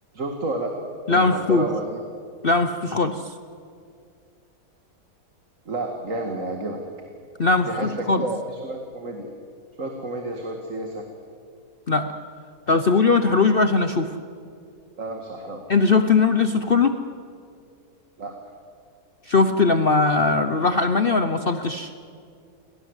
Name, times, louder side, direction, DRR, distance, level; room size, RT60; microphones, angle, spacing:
voice 1, 0.1-0.7 1.1-2.1 5.7-6.8 7.7-9.3 9.8-11.0 15.0-15.6 18.2-18.5, right 2 dB, 55° right, 3 dB, 2.5 m, -30 dB
voice 2, 1.1-1.6 2.4-3.3 7.4-8.2 11.9-12.1 12.7-14.1 15.7-16.9 19.3-21.9, left 4 dB, 45° left, 9 dB, 1.0 m, -20 dB
29.5 x 23.5 x 8.1 m, 2.3 s
omnidirectional pair, 1.6 m